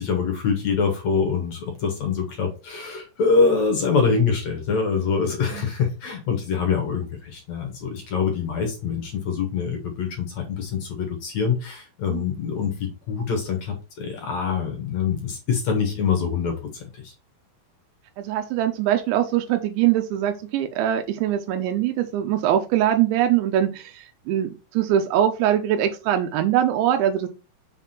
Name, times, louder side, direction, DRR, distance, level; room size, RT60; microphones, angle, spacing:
voice 1, 0.0-16.5 16.9-17.1, left 5 dB, 55° left, 3 dB, 2.1 m, -24 dB
voice 2, 18.2-27.3, right 11 dB, 85° right, 5 dB, 3.1 m, -22 dB
6.6 x 3.6 x 5.8 m, 0.31 s
omnidirectional pair, 5.1 m